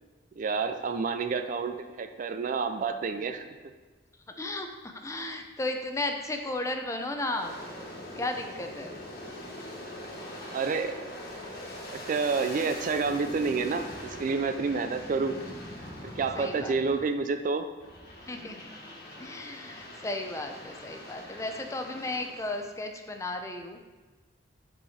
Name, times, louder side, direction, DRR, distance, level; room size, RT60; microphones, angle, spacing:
voice 1, 0.4-3.4 10.5-10.9 11.9-15.4 16.2-17.7, right 4 dB, 45° right, 8 dB, 0.4 m, -29 dB
voice 2, 4.4-7.6 8.2-8.9 16.4-16.8 18.3-18.7 19.2-23.8, left 2 dB, 15° left, 4 dB, 0.5 m, -34 dB
Aircraft, 7.3-17.3 17.8-22.8, left 1 dB, 55° left, 1.4 m, -43 dB
8.0 x 4.6 x 4.2 m, 1.3 s
head